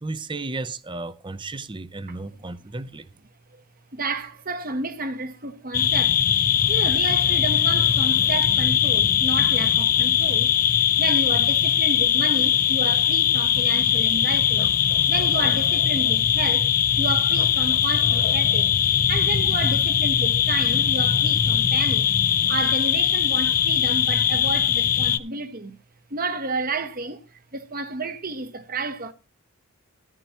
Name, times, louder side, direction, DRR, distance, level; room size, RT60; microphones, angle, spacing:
voice 1, 0.0-3.1, right 2 dB, 20° right, 0.7 m, -34 dB
voice 2, 3.9-6.2 6.7-10.5 11.0-14.7 15.1-18.7 19.1-22.1 22.5-25.8 26.1-29.1, right 3 dB, 40° right, 1.3 m, -31 dB
sound 1, 5.7-25.2, left 9 dB, 40° left, 0.6 m, -20 dB
13.5 x 11.0 x 2.9 m
head